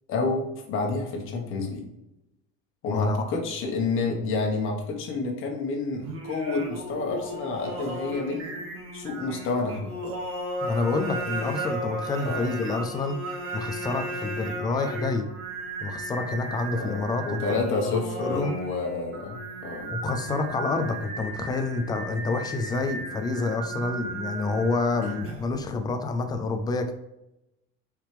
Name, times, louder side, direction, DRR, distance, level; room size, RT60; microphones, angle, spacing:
voice 1, 0.1-1.8 2.8-8.5 8.9-9.9 12.2-12.4 16.7-17.0 17.2-19.9 25.0-25.2, left 3 dB, 40° left, 1 dB, 1.4 m, -29 dB
voice 2, 2.9-3.2 10.6-13.2 13.5-15.3 15.8-18.5 19.9-26.9, left 3 dB, 15° left, 6 dB, 0.3 m, -28 dB
Singing, 6.0-25.6, right 1 dB, 40° right, 1.3 m, -35 dB
6.2 x 5.0 x 3.3 m, 0.91 s
cardioid pair, 180°, 33 cm